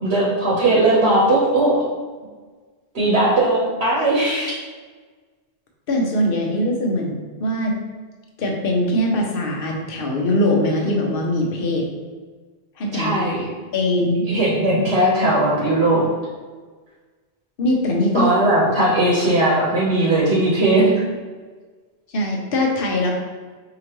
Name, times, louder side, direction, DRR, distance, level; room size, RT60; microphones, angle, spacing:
voice 1, 0.0-1.8 2.9-4.5 12.9-13.5 14.2-16.0 18.1-20.9, right 1 dB, 75° right, -6 dB, 1.2 m, -18 dB
voice 2, 5.9-7.8 8.4-11.9 12.8-13.2 13.7-14.3 17.6-18.3 22.1-23.1, left 1 dB, 60° left, 0 dB, 0.9 m, -21 dB
4.7 x 2.9 x 3.0 m, 1.4 s
omnidirectional pair, 1.1 m